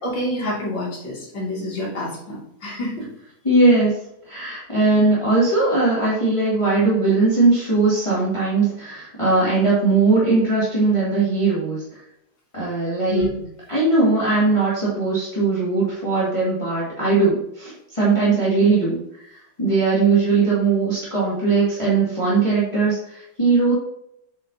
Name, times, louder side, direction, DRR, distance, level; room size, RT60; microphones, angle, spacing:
voice 1, 0.0-3.1 13.1-13.3, equal, 75° left, -5 dB, 3.3 m, -27 dB
voice 2, 3.4-4.0 4.3-12.0 12.5-13.2 13.7-19.3 19.6-23.7, right 3 dB, 15° left, -9 dB, 2.1 m, -19 dB
7.8 x 6.1 x 2.8 m, 0.77 s
omnidirectional pair, 2.1 m